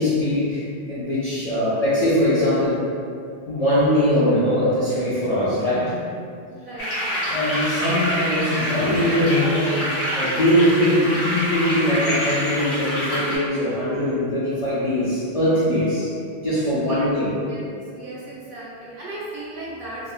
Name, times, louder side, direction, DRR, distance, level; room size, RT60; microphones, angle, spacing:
voice 1, 0.0-2.8 3.5-6.0 7.3-16.1 16.4-17.4, equal, 55° left, -11 dB, 0.4 m, -21 dB
voice 2, 6.5-7.3 16.7-17.1 17.5-17.7 17.9-20.1, right 1 dB, 60° right, -7 dB, 0.6 m, -36 dB
sound 1, 6.8-13.4, equal, 80° left, 1.0 m, -26 dB
2.5 x 2.0 x 2.4 m, 2.3 s
omnidirectional pair, 1.1 m